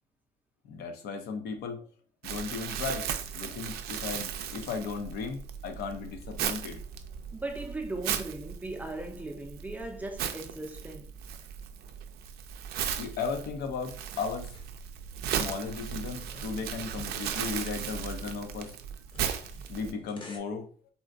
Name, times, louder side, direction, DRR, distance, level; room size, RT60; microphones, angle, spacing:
voice 1, 0.6-1.8 2.2-6.8 13.0-14.5 15.4-18.7 19.7-20.7, left 5 dB, 70° left, 0.6 m, -36 dB
Crumpling crinkling, 2.2-19.9, right 9 dB, 70° right, 0.4 m, -37 dB
voice 2, 7.3-11.1, right 2 dB, 10° right, 0.5 m, -38 dB
sound 1, 14.1-20.4, left 1 dB, 30° left, 0.7 m, -50 dB
3.7 x 2.1 x 2.6 m
cardioid pair, 110°, 17 cm